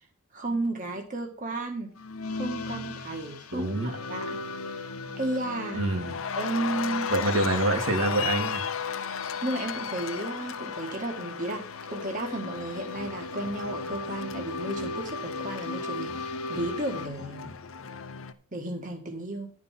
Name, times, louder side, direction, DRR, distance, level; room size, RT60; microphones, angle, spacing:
voice 1, 0.3-1.9 2.3-4.4 4.7-4.8 5.2-5.8 6.3-7.1 9.4-17.5 18.5-19.5, right 2 dB, 35° right, 2 dB, 1.6 m, -33 dB
sound 1, 2.0-17.1, left 3 dB, 85° left, 1.0 m, -37 dB
Cheering, 3.5-3.9 4.2-18.3, left 6 dB, 65° left, 0.8 m, -36 dB
voice 2, 3.5-3.9 5.7-6.1 7.1-8.6, right 2 dB, 60° right, 4 dB, 1.9 m, -26 dB
11.5 x 5.3 x 5.8 m, 0.43 s
head